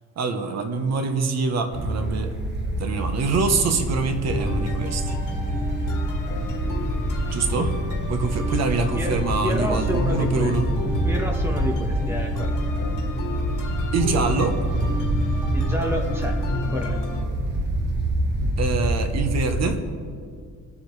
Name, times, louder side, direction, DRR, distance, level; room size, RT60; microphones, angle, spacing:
voice 1, 0.2-2.3 2.8-5.1 7.3-7.8 8.1-10.6 13.9-14.6 18.6-19.8, right 4 dB, 55° right, 7 dB, 1.0 m, -25 dB
sound 1, 1.7-19.7, right 1 dB, 35° right, 1.4 m, -26 dB
sound 2, 4.2-17.2, left 3 dB, 90° left, 1.8 m, -33 dB
voice 2, 8.9-10.5 11.0-12.6 15.5-16.4 16.7-17.0, equal, 10° right, 1 dB, 1.1 m, -29 dB
22.0 x 7.3 x 3.2 m, 2.1 s
cardioid pair, 170°, 31 cm